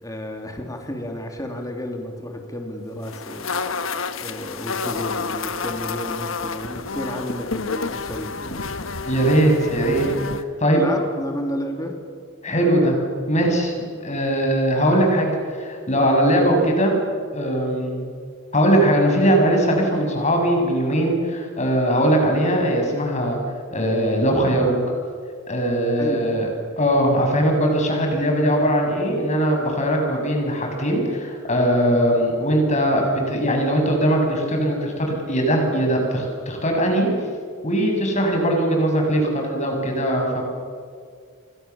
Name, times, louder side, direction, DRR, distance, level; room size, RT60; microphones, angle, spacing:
voice 1, 0.0-8.8 10.7-12.0 26.0-26.3, equal, 15° left, 3 dB, 3.2 m, -31 dB
sound 1, 3.0-10.4, left 4 dB, 75° left, 1.4 m, -29 dB
voice 2, 9.0-10.1 10.3-10.8 12.4-13.0 13.3-13.7 14.0-15.3 15.6-17.0 17.3-18.0 18.5-23.4 23.7-24.8 25.5-26.5 26.8-37.1 37.6-40.4, right 1 dB, 35° left, 2 dB, 6.9 m, -20 dB
28.5 x 24.5 x 7.2 m, 2.1 s
head